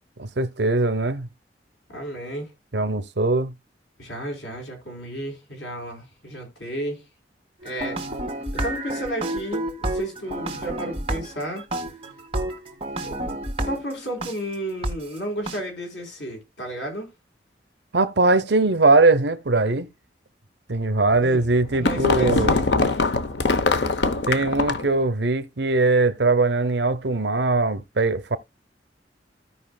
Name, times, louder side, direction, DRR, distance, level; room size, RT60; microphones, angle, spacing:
voice 1, 0.2-1.3 2.7-3.5 17.9-19.9 20.7-22.5 24.3-28.4, right 3 dB, 70° right, 0.8 m, -21 dB
voice 2, 1.9-2.5 4.0-7.0 7.6-8.0 8.5-11.7 13.0-13.4 13.6-17.1 21.2-21.5 21.8-22.9, right 1 dB, 90° left, 4.3 m, -33 dB
sound 1, 7.6-14.3 14.8-14.9 15.5-15.6, right 1 dB, 35° right, 1.9 m, -30 dB
sound 2, 21.4-24.9, left 3 dB, 70° left, 0.9 m, -22 dB
16.0 x 5.4 x 2.3 m
head